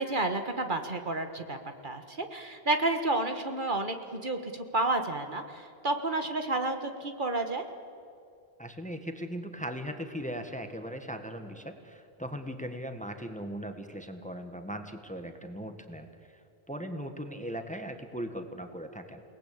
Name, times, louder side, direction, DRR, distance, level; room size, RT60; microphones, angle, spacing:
voice 1, 0.0-1.6 1.8-7.6, right 2 dB, 50° right, 6 dB, 1.7 m, -30 dB
voice 2, 8.6-19.2, equal, 5° left, 6 dB, 1.6 m, -39 dB
29.0 x 19.0 x 8.7 m, 2.5 s
omnidirectional pair, 1.1 m